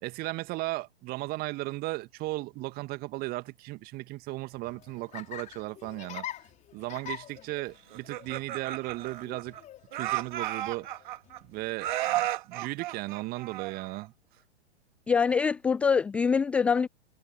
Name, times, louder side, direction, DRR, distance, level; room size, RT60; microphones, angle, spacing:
voice 1, 0.0-6.3 6.7-9.6 9.9-11.1 11.4-14.1, right 21 dB, 30° right, 2.2 m, -36 dB
Laughter, 4.5-12.1, left 11 dB, 25° left, 4.5 m, -46 dB
Laughter 2, 7.9-9.6 9.9-11.4 11.8-14.1, right 14 dB, 50° right, 3.0 m, -33 dB
voice 2, 15.1-16.9, left 6 dB, 5° left, 0.4 m, -24 dB
figure-of-eight pair, 105°, 32 cm